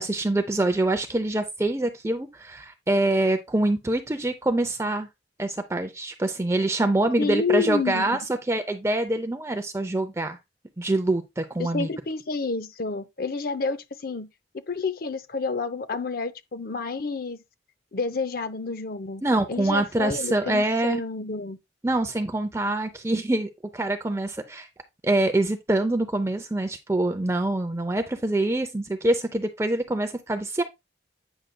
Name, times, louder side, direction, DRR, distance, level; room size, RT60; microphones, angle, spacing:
voice 1, 0.0-5.1 5.4-8.2 8.5-10.4 10.8-11.9 19.2-21.0 21.8-24.7 25.0-30.6, right 2 dB, 15° right, 0.5 m, -25 dB
voice 2, 7.2-8.2 11.6-14.3 14.5-17.4 17.9-19.2 19.5-21.6, left 4 dB, 50° left, 0.6 m, -29 dB
9.0 x 6.4 x 2.2 m
head